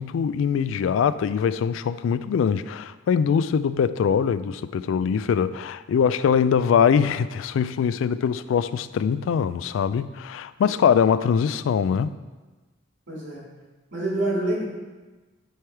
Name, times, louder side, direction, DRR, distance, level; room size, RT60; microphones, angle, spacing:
voice 1, 0.0-12.1, left 7 dB, 90° left, 15 dB, 0.3 m, -22 dB
voice 2, 13.1-13.4 13.9-14.6, right 1 dB, 70° right, -4 dB, 2.2 m, -27 dB
9.4 x 3.3 x 4.5 m, 1.2 s
head